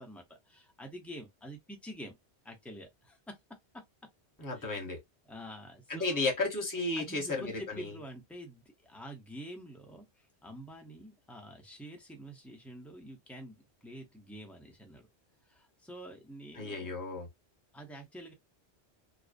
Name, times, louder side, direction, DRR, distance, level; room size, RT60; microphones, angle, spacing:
voice 1, 0.0-2.2 2.4-3.4 3.7-3.8 4.5-4.8 5.3-6.2 7.0-15.0 15.5-17.0 17.7-18.3, equal, ahead, 0.3 m, -47 dB
voice 2, 4.4-5.0 5.9-8.0 16.6-17.3, left 3 dB, 20° left, 0.7 m, -33 dB
2.5 x 2.0 x 2.4 m
omnidirectional pair, 1.2 m